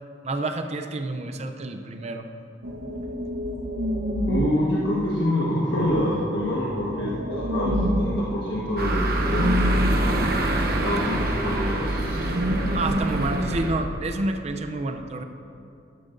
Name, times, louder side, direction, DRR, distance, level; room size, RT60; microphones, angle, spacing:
voice 1, 0.2-2.3 12.7-15.2, right 2 dB, 35° right, 6 dB, 0.5 m, -29 dB
sound 1, 2.6-13.6, equal, 90° right, 1.1 m, -29 dB
voice 2, 4.3-9.8 10.8-12.2, left 1 dB, 70° left, -6 dB, 1.4 m, -26 dB
sound 2, 8.8-13.7, right 1 dB, 55° right, 1.0 m, -25 dB
13.5 x 12.5 x 2.6 m, 2.6 s
head